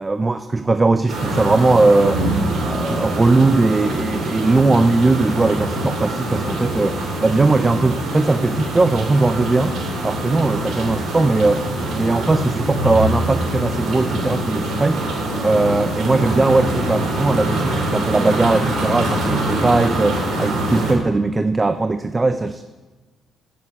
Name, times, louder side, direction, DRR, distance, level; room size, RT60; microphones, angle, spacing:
voice 1, 0.0-2.2 2.6-11.6 11.9-15.0 15.4-22.6, right 3 dB, 20° right, 10 dB, 0.5 m, -19 dB
sound 1, 1.1-20.9, right 1 dB, 70° right, 3.1 m, -24 dB
7.9 x 7.6 x 8.3 m, 1.2 s
cardioid pair, 90°, 0 cm